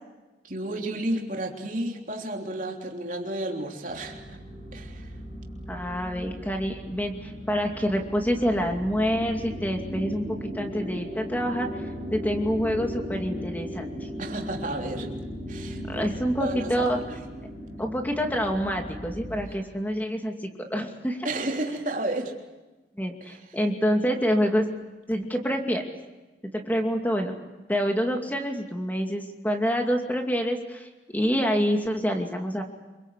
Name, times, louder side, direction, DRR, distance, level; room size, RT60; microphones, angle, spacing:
voice 1, 0.4-4.4 4.7-5.1 14.2-15.1 15.5-16.1 16.4-17.1 19.5-19.6 21.2-22.3 23.2-23.6, right 1 dB, 45° right, 1 dB, 3.5 m, -32 dB
sound 1, 3.9-19.5, equal, 80° left, 6.5 m, -37 dB
voice 2, 5.7-11.8 12.1-13.9 15.9-17.0 17.8-21.3 21.7-22.0 23.0-24.7 25.1-25.8 26.5-27.4 27.7-32.6, equal, 10° left, 3 dB, 2.5 m, -27 dB
27.0 x 24.0 x 8.3 m, 1.2 s
head